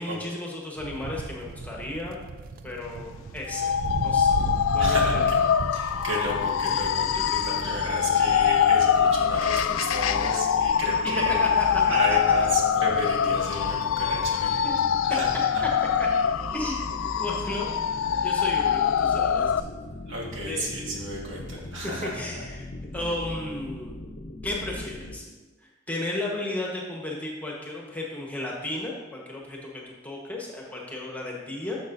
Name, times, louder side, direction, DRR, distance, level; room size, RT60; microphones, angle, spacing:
voice 1, 0.0-2.2 2.6-3.7 4.0-4.3 4.7-5.3 11.2-12.0 14.6-14.7 16.0-16.1 16.5-17.7 18.2-19.5 20.4-20.7 21.8-22.7 22.9-23.9 24.4-25.2 25.6-31.8, left 1 dB, 10° left, -2 dB, 1.2 m, -34 dB
sound 1, 0.8-10.6 11.5-14.6, right 3 dB, 45° right, 0.4 m, -37 dB
sound 2, 3.5-19.6, left 8 dB, 85° left, 0.3 m, -24 dB
voice 2, 4.8-5.2 5.7-11.4 11.8-14.8 15.0-15.3 15.5-15.6 20.1-22.3, right 1 dB, 70° right, -3 dB, 1.9 m, -33 dB
sound 3, 6.2-25.2, left 1 dB, 55° left, 0.8 m, -39 dB
10.5 x 6.8 x 2.6 m, 1.2 s
head